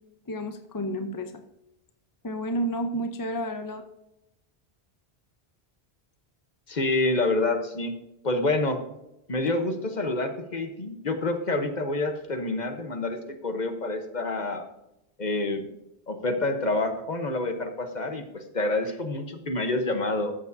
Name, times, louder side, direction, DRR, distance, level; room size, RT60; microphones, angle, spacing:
voice 1, 0.3-1.4 2.2-3.8 9.4-9.5, equal, 25° left, 7 dB, 0.6 m, -31 dB
voice 2, 6.7-7.9 8.2-8.8 9.3-14.6 15.2-15.7 16.1-20.3, left 2 dB, 45° left, 6 dB, 1.1 m, -27 dB
13.5 x 7.0 x 2.7 m, 0.87 s
omnidirectional pair, 1.1 m